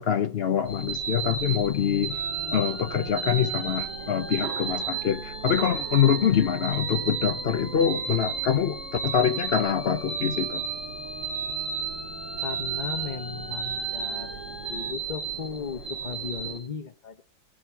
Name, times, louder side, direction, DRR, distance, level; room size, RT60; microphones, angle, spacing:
voice 1, 0.0-2.2 2.5-10.6, left 8 dB, 90° left, 9 dB, 0.5 m, -25 dB
sound 1, 0.7-16.6, right 5 dB, 70° right, 3.0 m, -33 dB
sound 2, 2.1-14.9, right 7 dB, 50° right, 1.1 m, -43 dB
voice 2, 12.4-14.4 14.7-17.2, left 6 dB, 35° left, 8 dB, 0.8 m, -36 dB
18.0 x 6.5 x 5.8 m, 0.40 s
omnidirectional pair, 2.0 m